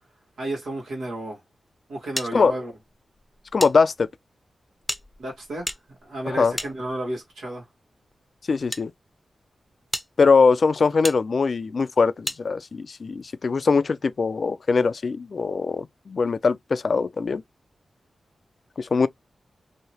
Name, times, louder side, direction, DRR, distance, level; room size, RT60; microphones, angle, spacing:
voice 1, 0.4-1.4 1.9-2.7 5.2-5.7 6.0-7.6, right 1 dB, 85° right, 1.6 m, -32 dB
sound 1, 2.2-3.7 4.0-4.1 4.8-7.3 8.1-8.8 9.4-9.5 9.9-10.1 11.0-11.2 12.2-12.4, left 1 dB, 5° left, 0.7 m, -33 dB
voice 2, 3.5-4.1 6.3-6.5 8.5-8.9 10.2-17.4 18.8-19.1, left 4 dB, 60° left, 0.3 m, -21 dB
3.0 x 2.7 x 2.8 m
cardioid pair, 45°, 0 cm